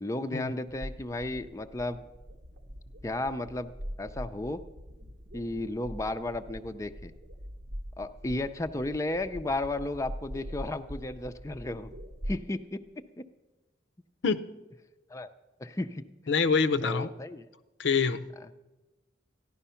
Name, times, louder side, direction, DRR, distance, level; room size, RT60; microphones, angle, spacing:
voice 1, 0.0-2.0 3.0-3.7 4.0-4.6 5.3-7.1 8.0-11.9 12.3-12.8 13.2-13.3 15.1-15.3 15.6-16.0 16.8-17.5, left 2 dB, 15° left, 0.5 m, -33 dB
sound 1, 0.7-12.4, equal, 80° right, 1.0 m, -43 dB
voice 2, 16.3-17.1 17.8-18.3, left 5 dB, 80° left, 0.6 m, -26 dB
14.5 x 11.0 x 5.6 m
head